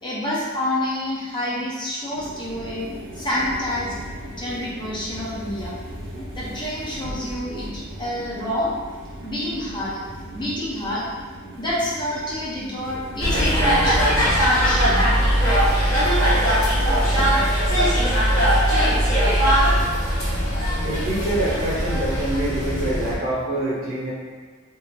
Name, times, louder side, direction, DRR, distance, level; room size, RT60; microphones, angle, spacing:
voice 1, 0.0-2.9 3.1-3.9 4.3-5.7 6.3-8.7 9.2-10.0 10.3-11.0 11.6-15.1 16.4-17.2, left 1 dB, 20° left, -7 dB, 0.7 m, -28 dB
sound 1, 2.1-16.0, equal, 65° right, 0.7 m, -38 dB
sound 2, 13.2-23.1, equal, 70° left, 1.4 m, -20 dB
voice 2, 20.8-24.1, right 1 dB, 45° right, -6 dB, 1.0 m, -25 dB
2.9 x 2.7 x 3.5 m, 1.5 s
head